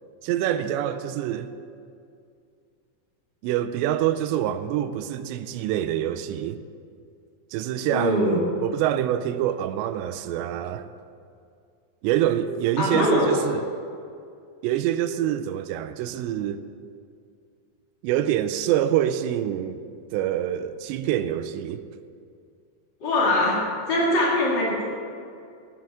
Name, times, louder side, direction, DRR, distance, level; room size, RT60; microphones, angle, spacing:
voice 1, 0.2-1.5 3.4-6.6 7.5-10.9 12.0-13.7 14.6-16.6 18.0-19.8 20.1-21.8, right 11 dB, 85° right, 2.7 m, -26 dB
voice 2, 7.9-8.4 12.8-13.3 23.0-23.6 23.9-24.8, left 1 dB, 55° left, 1.2 m, -22 dB
9.7 x 7.1 x 9.0 m
omnidirectional pair, 5.2 m